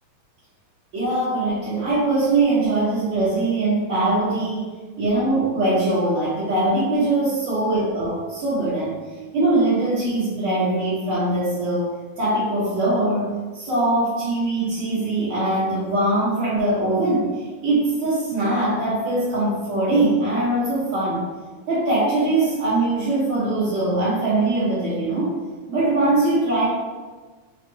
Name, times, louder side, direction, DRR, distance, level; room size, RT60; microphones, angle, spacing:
voice 1, 0.9-8.9 9.3-11.9 12.2-21.2 21.7-25.3 25.7-26.6, right 2 dB, 60° right, -11 dB, 1.4 m, -22 dB
5.3 x 3.3 x 2.7 m, 1.4 s
omnidirectional pair, 3.6 m